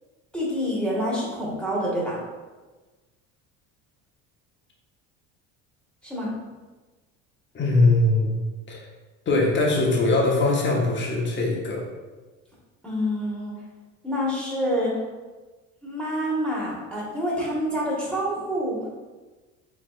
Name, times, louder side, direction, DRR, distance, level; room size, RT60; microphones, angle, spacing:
voice 1, 0.3-2.2 6.0-6.3 12.8-13.5 14.0-14.9 15.8-18.8, equal, 5° left, -6 dB, 1.4 m, -27 dB
voice 2, 7.5-8.3 8.7-8.9 9.3-11.8, left 2 dB, 30° left, -2 dB, 1.0 m, -21 dB
4.8 x 3.3 x 2.5 m, 1.2 s
supercardioid pair, 100°, 38 cm